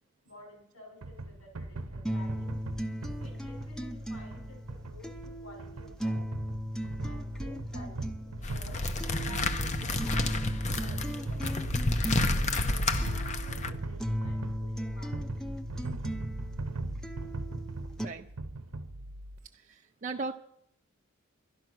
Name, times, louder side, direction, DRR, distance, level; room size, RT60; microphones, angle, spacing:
voice 1, 0.2-2.6 3.2-6.3 7.0-8.8 9.2-11.7 12.2-15.4, left 1 dB, 75° left, 0 dB, 5.7 m, -52 dB
sound 1, 1.0-19.4, right 2 dB, 75° right, 0.8 m, -39 dB
sound 2, 2.1-18.1, equal, 5° left, 0.6 m, -37 dB
sound 3, 8.4-13.7, left 2 dB, 35° left, 0.7 m, -30 dB
voice 2, 19.5-20.3, right 3 dB, 35° right, 3 dB, 0.5 m, -37 dB
12.0 x 11.5 x 6.2 m, 0.74 s
head